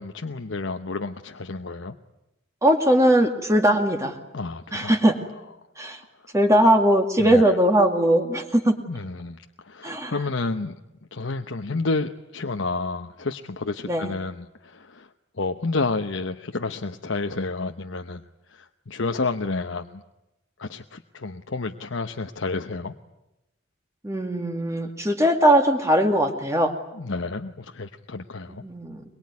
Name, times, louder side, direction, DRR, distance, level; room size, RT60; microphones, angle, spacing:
voice 1, 0.0-1.9 4.3-4.9 7.2-7.6 8.9-9.4 9.6-10.7 11.1-15.1 15.4-18.2 18.5-20.0 20.6-22.9 27.0-28.6, left 3 dB, 70° left, 6 dB, 1.0 m, -30 dB
voice 2, 2.6-4.1 4.7-5.1 5.8-6.0 6.3-8.8 9.8-10.1 13.9-14.1 24.0-26.7 28.5-29.0, right 1 dB, 15° right, 3 dB, 2.2 m, -20 dB
23.0 x 22.5 x 9.6 m, 0.93 s
head